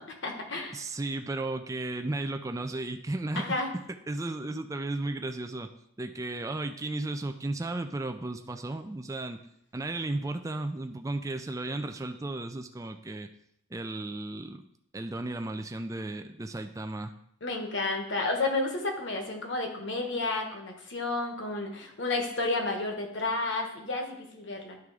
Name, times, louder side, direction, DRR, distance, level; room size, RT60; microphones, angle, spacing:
voice 1, 0.0-0.8 3.4-3.7 17.4-24.8, left 2 dB, 55° left, 3 dB, 1.2 m, -31 dB
voice 2, 0.7-3.5 4.1-5.7 6.0-9.4 9.7-13.3 13.7-14.6 14.9-17.1, right 2 dB, 15° right, 7 dB, 0.3 m, -34 dB
10.5 x 3.6 x 4.8 m, 0.76 s
head